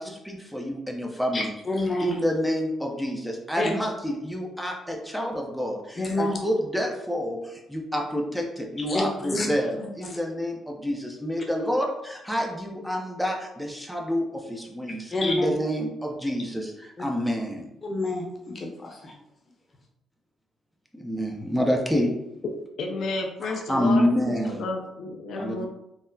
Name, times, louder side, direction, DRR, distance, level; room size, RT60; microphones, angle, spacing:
voice 1, 0.0-1.5 2.0-17.7 20.9-22.2 23.4-24.6 25.3-25.7, equal, ahead, 1 dB, 0.5 m, -28 dB
voice 2, 1.3-2.1 3.6-3.7 6.0-6.4 8.9-9.5 15.1-15.5 17.8-18.2 18.5-19.1, left 2 dB, 35° left, 1 dB, 0.8 m, -27 dB
voice 3, 22.8-25.7, left 3 dB, 75° left, 2 dB, 0.4 m, -32 dB
3.8 x 2.1 x 2.7 m, 0.87 s
cardioid pair, 90°, 0 cm